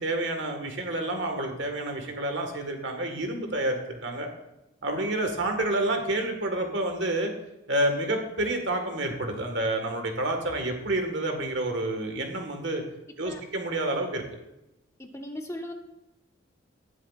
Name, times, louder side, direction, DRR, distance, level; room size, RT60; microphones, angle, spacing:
voice 1, 0.0-4.3 4.8-7.3 7.7-12.8 13.2-14.2, right 1 dB, 70° right, 4 dB, 1.7 m, -29 dB
voice 2, 15.0-15.7, left 1 dB, 15° left, 4 dB, 0.9 m, -37 dB
18.5 x 7.4 x 2.5 m, 0.92 s
head